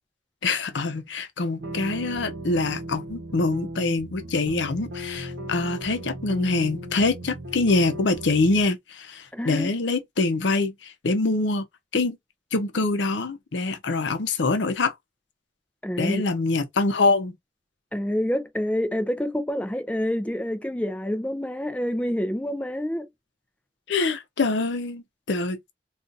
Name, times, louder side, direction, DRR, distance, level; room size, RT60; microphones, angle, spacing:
voice 1, 0.4-11.6 11.9-12.2 12.5-14.9 16.0-17.4 23.9-25.7, left 3 dB, 80° left, 0.6 m, -25 dB
sound 1, 1.6-8.6, right 1 dB, 70° right, 0.8 m, -37 dB
voice 2, 9.3-9.7 15.8-16.3 17.9-23.1, equal, 5° left, 0.4 m, -27 dB
2.5 x 2.4 x 3.9 m
head